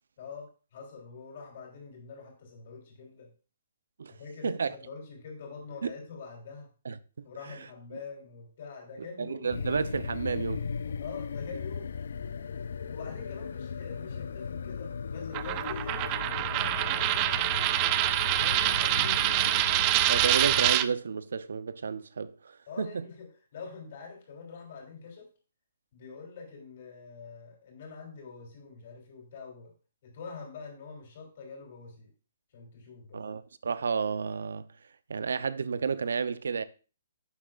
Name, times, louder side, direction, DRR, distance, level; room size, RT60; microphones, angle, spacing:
voice 1, 0.2-3.3 4.1-6.7 7.2-9.6 11.0-11.9 12.9-16.1 16.5-17.5 18.2-19.6 22.7-23.3 23.5-25.3 25.9-29.7 30.0-32.1 32.5-33.2, left 5 dB, 45° left, 3.4 m, -45 dB
voice 2, 6.8-7.6 7.9-8.0 9.2-10.7 20.1-23.1 33.1-34.7 35.1-36.6, right 5 dB, 85° right, 0.6 m, -31 dB
sound 1, 9.5-20.7, left 6 dB, 70° left, 0.4 m, -37 dB
Coin (dropping), 15.3-20.9, right 14 dB, 20° right, 0.3 m, -26 dB
10.5 x 7.3 x 2.4 m
hypercardioid pair, 170°, 0 cm